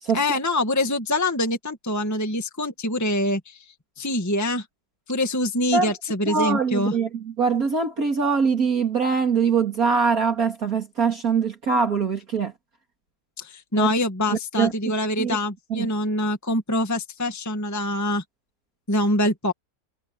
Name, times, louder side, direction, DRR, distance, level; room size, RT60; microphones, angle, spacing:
voice 1, 0.1-3.6 4.0-4.7 5.1-6.9 13.4-18.2 18.9-19.5, left 1 dB, 10° left, 1.7 m, -24 dB
voice 2, 6.3-12.5 13.7-13.9 14.3-14.7 15.2-15.4 15.7-15.9, right 5 dB, 50° right, 2.8 m, -23 dB
omnidirectional pair, 2.0 m